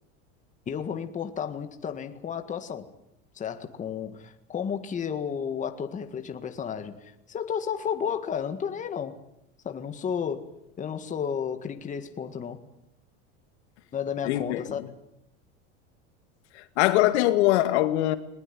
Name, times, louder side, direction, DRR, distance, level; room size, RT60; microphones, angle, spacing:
voice 1, 0.7-2.9 3.4-9.2 9.6-10.5 10.8-12.6 13.9-14.8, left 7 dB, 20° left, 1.8 m, -32 dB
voice 2, 14.2-14.6 16.6-18.1, left 15 dB, 75° left, 2.3 m, -22 dB
21.0 x 20.5 x 9.3 m
supercardioid pair, 140°, 33 cm